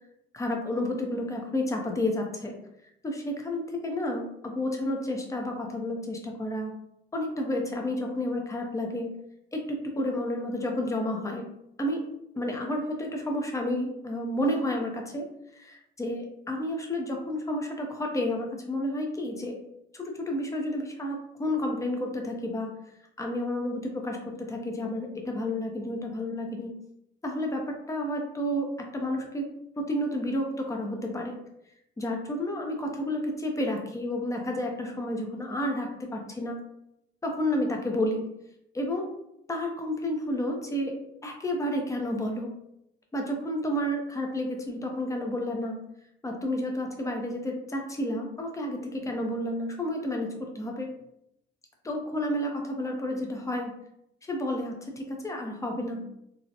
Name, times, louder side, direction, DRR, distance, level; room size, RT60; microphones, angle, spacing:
voice 1, 0.3-2.6 3.0-6.7 7.1-9.1 9.5-11.5 11.8-12.1 12.3-15.3 15.5-19.6 19.9-22.8 23.2-26.7 27.2-29.5 29.8-31.4 32.0-36.6 37.2-38.3 38.7-39.1 39.5-41.0 41.2-42.5 43.1-45.8 46.2-50.9 51.8-53.7 54.3-56.1, left 1 dB, 15° left, 1 dB, 0.6 m, -31 dB
2.6 x 2.1 x 2.6 m, 0.79 s
cardioid pair, 90°, 20 cm